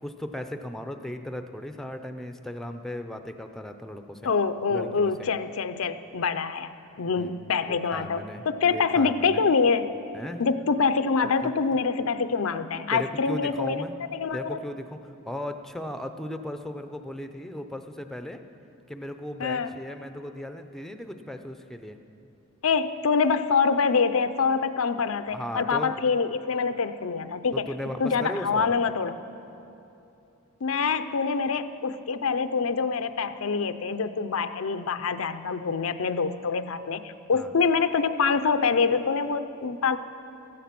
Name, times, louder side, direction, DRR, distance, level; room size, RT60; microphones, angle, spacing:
voice 1, 0.0-4.3 4.7-5.3 7.2-9.4 10.1-10.4 11.4-11.5 12.9-13.9 14.3-15.0 15.3-18.4 18.9-22.0 25.3-25.9 27.5-28.8 37.3-37.5, left 1 dB, ahead, 7 dB, 0.5 m, -36 dB
voice 2, 4.2-6.7 7.0-9.9 10.4-13.8 14.1-14.6 19.4-19.7 22.6-27.7 28.0-29.1 30.6-40.0, left 5 dB, 85° left, 11 dB, 0.6 m, -25 dB
15.5 x 14.0 x 5.9 m, 2.8 s
head